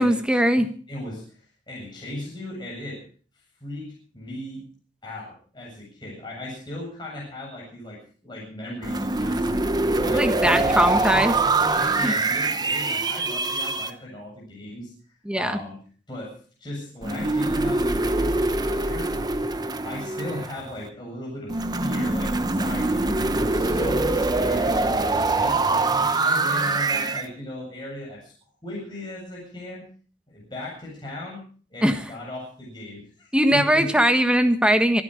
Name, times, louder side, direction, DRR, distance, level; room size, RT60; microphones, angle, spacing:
voice 1, 0.0-0.7 10.1-11.4 12.0-12.1 15.2-15.6 31.8-32.0 33.3-35.0, equal, 5° right, 8 dB, 1.5 m, -20 dB
voice 2, 0.9-1.3 1.7-3.0 3.6-4.7 5.0-11.3 11.7-14.9 15.3-15.8 16.1-19.1 19.6-25.7 26.0-28.3 28.6-29.9 30.3-34.0, left 1 dB, 25° left, -4 dB, 7.8 m, -37 dB
sound 1, 8.8-13.9 17.0-20.8 21.5-27.3, right 2 dB, 20° right, 0.9 m, -24 dB
25.5 x 9.7 x 5.1 m, 0.42 s
head